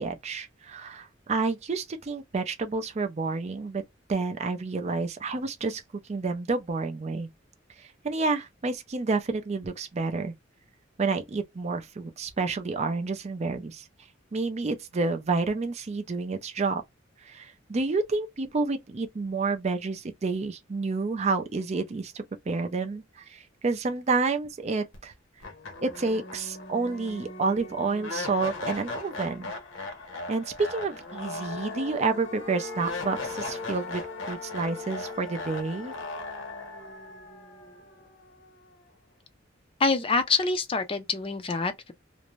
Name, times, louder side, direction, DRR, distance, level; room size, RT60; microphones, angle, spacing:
voice 1, 0.0-3.8 4.1-5.8 6.1-7.3 7.8-10.3 11.0-13.8 14.3-16.8 17.2-25.1 25.8-29.5 30.3-34.0 34.3-35.9, right 3 dB, 35° right, 0.4 m, -29 dB
sound 1, 24.9-25.0 25.4-38.5, left 3 dB, 70° left, 0.8 m, -38 dB
voice 2, 39.8-41.9, left 4 dB, 25° left, 0.4 m, -26 dB
2.5 x 2.0 x 3.0 m
head